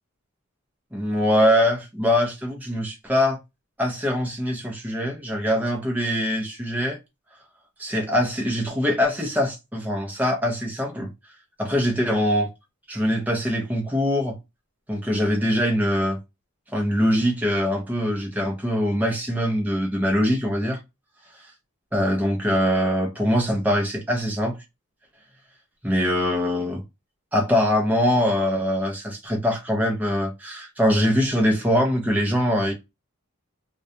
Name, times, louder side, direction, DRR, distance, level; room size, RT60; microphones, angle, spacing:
voice 1, 0.9-3.4 3.8-7.0 7.8-11.1 11.6-12.5 12.9-14.4 14.9-16.2 16.7-20.8 21.9-24.6 25.8-26.8 27.3-32.7, equal, 5° right, 0.6 m, -23 dB
2.3 x 2.2 x 2.6 m
head